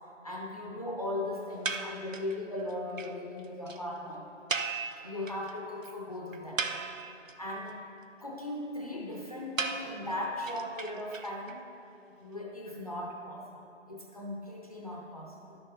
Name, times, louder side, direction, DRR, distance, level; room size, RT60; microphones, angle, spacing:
voice 1, 0.2-4.3 5.0-6.7 7.4-7.8 8.2-11.6 12.2-13.5 13.9-15.6, left 1 dB, 30° left, -1 dB, 0.7 m, -38 dB
sound 1, 1.6-2.4 2.7-2.8 3.0-3.1 3.4-3.5 3.7-3.8 4.5-5.5 5.8-5.9 6.3-7.3 9.6-11.5, right 4 dB, 85° right, 0.8 m, -35 dB
11.0 x 6.8 x 5.5 m, 2.7 s
figure-of-eight pair, 155°, 38 cm